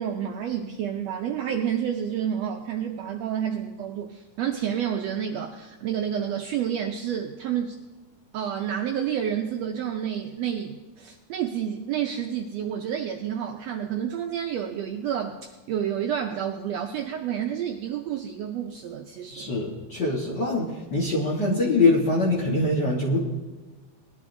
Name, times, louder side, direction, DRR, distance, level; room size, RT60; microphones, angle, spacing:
voice 1, 0.0-7.8 8.3-19.5, right 9 dB, 80° right, 3 dB, 1.5 m, -29 dB
voice 2, 19.3-23.2, left 2 dB, 50° left, -3 dB, 1.2 m, -23 dB
20.0 x 11.0 x 2.6 m, 1.2 s
omnidirectional pair, 3.6 m